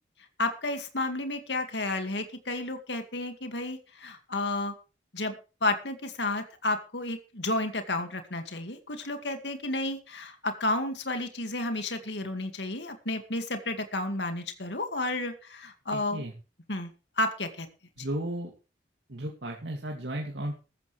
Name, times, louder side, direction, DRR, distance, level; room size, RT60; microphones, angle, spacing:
voice 1, 0.4-4.7 5.1-5.3 5.6-16.2 16.7-16.9 17.2-17.7, left 2 dB, 75° left, 7 dB, 2.3 m, -31 dB
voice 2, 15.9-16.3 18.0-18.5 19.1-20.5, right 1 dB, 75° right, 1 dB, 2.6 m, -34 dB
15.5 x 13.5 x 3.4 m, 0.33 s
head